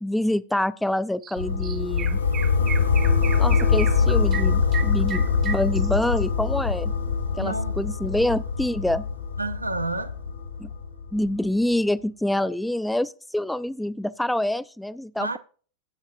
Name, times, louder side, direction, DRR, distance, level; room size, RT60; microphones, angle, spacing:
voice 1, 0.0-2.2 3.4-6.9 7.4-9.0 10.6-10.7 11.1-15.4, left 1 dB, 5° left, 0.4 m, -26 dB
Chirp tweet, 1.2-1.4 1.6-6.2, right 8 dB, 25° right, 0.8 m, -35 dB
sound 1, 1.4-11.3, left 5 dB, 75° left, 1.8 m, -23 dB
voice 2, 7.4-7.8 9.4-10.1 15.2-15.4, right 2 dB, 85° right, 0.8 m, -29 dB
16.5 x 8.0 x 2.6 m
figure-of-eight pair, 90°, 0 cm